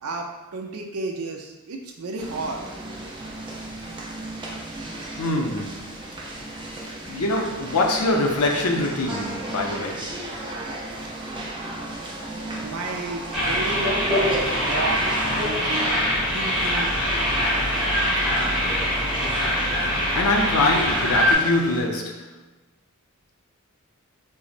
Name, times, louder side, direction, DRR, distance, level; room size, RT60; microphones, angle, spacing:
voice 1, 0.0-2.6 12.6-15.9 16.3-17.0, right 3 dB, 80° right, 2 dB, 0.5 m, -32 dB
sound 1, 2.2-21.8, right 1 dB, 20° right, 0.4 m, -35 dB
voice 2, 5.2-5.9 6.8-10.1 19.4-19.6 19.9-22.3, left 2 dB, 80° left, 2 dB, 0.5 m, -24 dB
sound 2, 13.3-21.4, equal, ahead, 0.8 m, -23 dB
4.0 x 2.0 x 2.5 m, 1.0 s
head